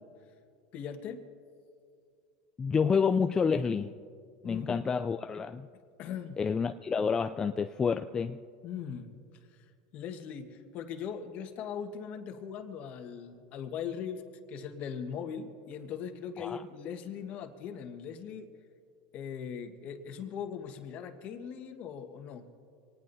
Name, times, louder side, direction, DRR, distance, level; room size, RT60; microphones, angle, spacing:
voice 1, 0.7-1.2 4.4-4.8 6.0-6.4 8.6-9.1 9.9-14.2 14.5-18.5 19.1-22.5, left 7 dB, 50° left, 1.5 m, -40 dB
voice 2, 2.6-3.9 4.4-5.7 6.4-8.4 16.4-16.6, left 5 dB, 20° left, 0.4 m, -29 dB
26.0 x 19.0 x 2.7 m
supercardioid pair, 125°, 3 cm